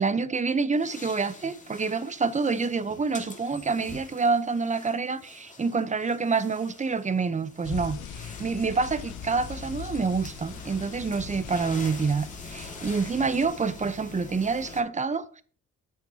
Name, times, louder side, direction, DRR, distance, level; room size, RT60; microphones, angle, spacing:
voice 1, 0.0-15.4, right 4 dB, 25° right, 0.8 m, -27 dB
sound 1, 0.8-14.8, left 3 dB, 25° left, 1.9 m, -45 dB
sound 2, 7.6-13.5, left 7 dB, 75° left, 0.8 m, -41 dB
8.9 x 8.3 x 2.8 m
cardioid pair, 90°, 30 cm